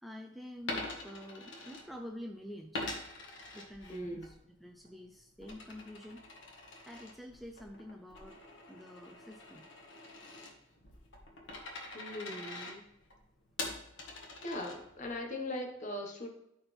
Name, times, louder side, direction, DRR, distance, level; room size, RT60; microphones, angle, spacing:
voice 1, 0.0-3.0 3.5-4.3 4.6-6.2 6.9-8.4 8.7-9.7, left 1 dB, ahead, 2 dB, 0.5 m, -48 dB
Coin (dropping), 0.6-2.3 2.7-4.3 4.7-15.1, left 2 dB, 70° left, 1.7 m, -45 dB
voice 2, 3.9-4.3 11.9-12.9 14.4-16.3, left 1 dB, 40° left, 2 dB, 1.5 m, -40 dB
13.0 x 4.4 x 3.5 m, 0.80 s
head